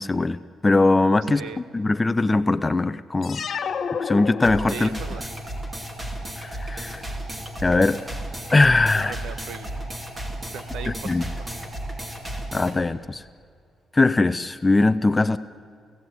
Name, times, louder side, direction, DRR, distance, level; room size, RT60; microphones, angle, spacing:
voice 1, 0.0-1.4 1.7-3.4 4.0-4.9 6.4-7.0 7.6-8.0 8.5-9.1 11.0-11.2 12.5-13.2 13.9-15.4, left 2 dB, 15° left, 13 dB, 0.6 m, -20 dB
sound 1, 3.2-5.1, left 6 dB, 45° left, 1.3 m, -30 dB
sound 2, 4.4-12.8, right 1 dB, 15° right, 2.4 m, -33 dB
voice 2, 4.7-5.2 8.9-9.8 10.5-11.6, right 7 dB, 90° right, 13 dB, 1.1 m, -38 dB
29.5 x 16.0 x 9.5 m, 2.3 s
cardioid pair, 135°, 0 cm